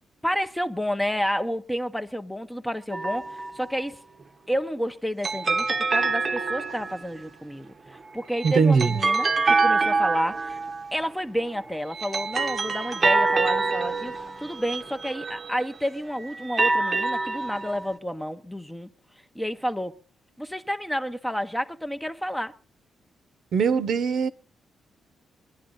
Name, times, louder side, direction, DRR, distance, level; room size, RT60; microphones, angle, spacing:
voice 1, 0.2-4.0 4.5-10.6 10.9-18.9 19.3-20.0 20.4-22.5, equal, 5° left, 0.7 m, -30 dB
sound 1, 2.9-3.7 5.2-7.2 8.1-10.9 11.7-15.7 16.3-17.9, right 3 dB, 35° right, 0.8 m, -26 dB
voice 2, 8.4-9.0 23.5-24.3, right 5 dB, 60° right, 0.9 m, -21 dB
22.0 x 11.0 x 3.8 m
cardioid pair, 140°, 0 cm